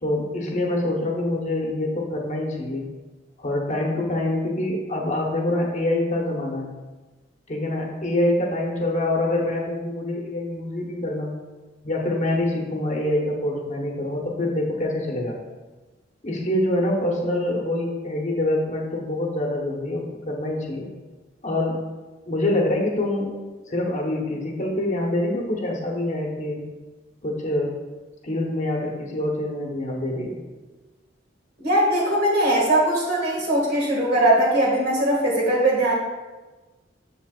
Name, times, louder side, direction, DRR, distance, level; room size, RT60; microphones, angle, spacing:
voice 1, 0.0-2.8 3.4-6.7 7.5-11.3 11.8-15.4 16.2-20.9 21.4-21.8 22.3-23.3 23.7-26.6 27.2-27.7 28.2-30.4, left 1 dB, 40° left, -1 dB, 1.1 m, -25 dB
voice 2, 31.6-35.9, right 1 dB, 55° right, -3 dB, 2.0 m, -20 dB
7.6 x 6.6 x 2.4 m, 1.2 s
head